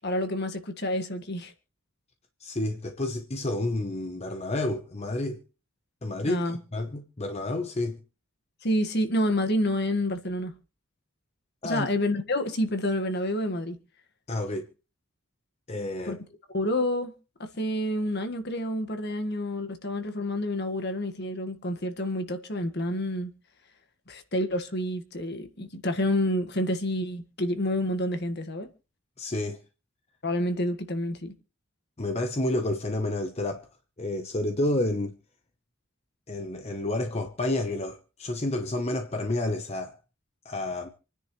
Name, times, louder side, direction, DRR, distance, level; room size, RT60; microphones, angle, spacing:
voice 1, 0.0-1.5 6.2-6.6 8.6-10.5 11.6-13.8 16.0-16.2 16.5-17.1 17.6-23.3 24.1-28.7 30.2-31.3, left 1 dB, 55° left, 1.7 m, -28 dB
voice 2, 2.4-5.4 6.0-8.0 11.6-11.9 14.3-14.7 15.7-16.2 29.2-29.6 32.0-33.7 34.0-35.1 36.3-40.0 40.4-40.9, left 1 dB, 30° left, 1.0 m, -30 dB
27.5 x 10.0 x 3.2 m
head